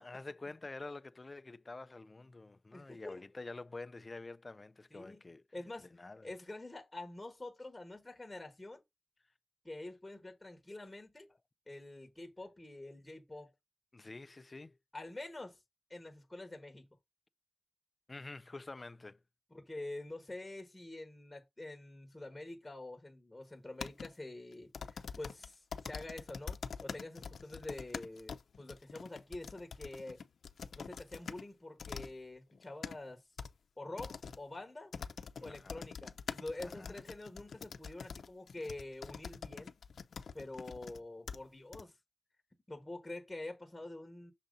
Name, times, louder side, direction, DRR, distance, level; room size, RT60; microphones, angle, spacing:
voice 1, 0.0-5.4 5.8-6.3 13.9-14.8 18.1-19.2 35.4-35.8 36.6-37.0, left 3 dB, 30° left, 0.4 m, -48 dB
voice 2, 2.7-3.2 4.9-5.2 5.5-5.9 6.2-8.8 9.6-11.3 11.7-13.5 14.9-15.6 15.9-16.9 19.5-30.2 30.8-33.2 33.8-34.9 35.4-39.7 40.3-42.0 42.7-44.3, left 2 dB, 15° left, 1.2 m, -46 dB
sound 1, 23.8-24.1 24.7-31.4 31.8-32.1 32.5-33.0 33.4-33.5 34.0-34.4 34.9-41.0 41.3-41.4 41.7-41.8, left 6 dB, 85° left, 0.6 m, -45 dB
6.4 x 4.1 x 3.9 m
wide cardioid pair, 115°, 0 cm